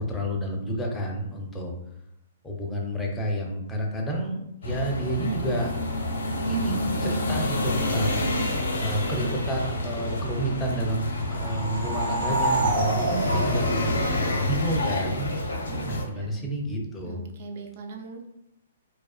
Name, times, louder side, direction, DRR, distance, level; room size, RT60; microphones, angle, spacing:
voice 1, 0.0-1.7 2.4-5.7 6.5-8.2 8.8-13.9 14.4-15.3 15.9-17.2, right 1 dB, 10° left, 0 dB, 0.5 m, -30 dB
sound 1, 4.6-16.0, left 1 dB, 90° left, 0.6 m, -28 dB
sound 2, 11.1-14.7, right 2 dB, 80° right, 1.4 m, -29 dB
voice 2, 15.7-16.3 17.1-18.3, right 4 dB, 55° right, 4 dB, 0.4 m, -41 dB
2.4 x 2.3 x 2.3 m, 0.81 s
hypercardioid pair, 135°, 0 cm